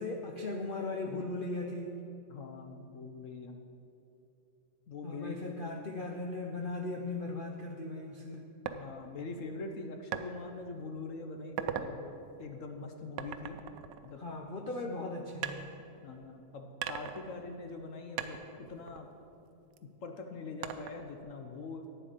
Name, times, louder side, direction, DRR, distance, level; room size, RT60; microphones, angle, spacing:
voice 1, 0.0-2.0 5.0-8.4 14.2-15.7, left 2 dB, 90° left, 2 dB, 0.4 m, -38 dB
voice 2, 2.3-3.6 4.9-5.4 8.7-13.6 14.0-14.2 16.0-19.1 20.0-21.9, left 3 dB, 60° left, 5 dB, 0.9 m, -43 dB
sound 1, 8.7-8.8 10.1-10.3 10.8-11.0 11.4-11.9 13.2-14.7 15.4-16.3 16.8-17.9 18.2-19.8 20.6-21.2, right 9 dB, 80° right, 1.2 m, -40 dB
11.0 x 8.9 x 5.0 m, 2.8 s
omnidirectional pair, 1.9 m